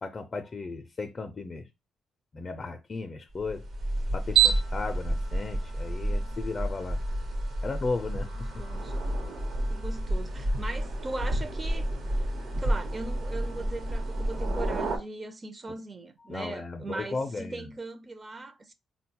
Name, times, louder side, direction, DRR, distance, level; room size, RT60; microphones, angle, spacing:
voice 1, 0.0-1.7 2.3-3.6 4.1-7.0 7.6-8.3 16.3-17.7, left 3 dB, 35° left, 0.4 m, -35 dB
sound 1, 3.4-15.0, right 2 dB, 55° right, 0.9 m, -29 dB
voice 2, 8.3-9.0 9.7-11.9 12.1-12.3 12.6-18.7, right 2 dB, 30° right, 0.6 m, -39 dB
3.7 x 2.2 x 2.8 m
cardioid pair, 90°, 0 cm